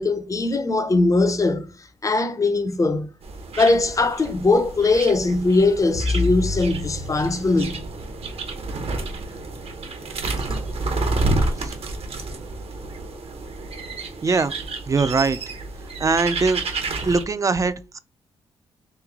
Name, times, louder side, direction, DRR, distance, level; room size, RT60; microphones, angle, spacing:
voice 1, 0.0-1.7 2.0-3.1 3.6-7.8, left 3 dB, 30° left, 0.5 m, -20 dB
sound 1, 3.2-17.2, right 2 dB, 60° right, 0.8 m, -30 dB
sound 2, 5.9-9.0, left 3 dB, 70° left, 0.9 m, -30 dB
voice 2, 14.2-14.5 14.9-15.4 16.0-16.6 17.0-18.0, right 4 dB, 30° right, 0.4 m, -21 dB
3.1 x 3.0 x 3.5 m
cardioid pair, 80°, 11 cm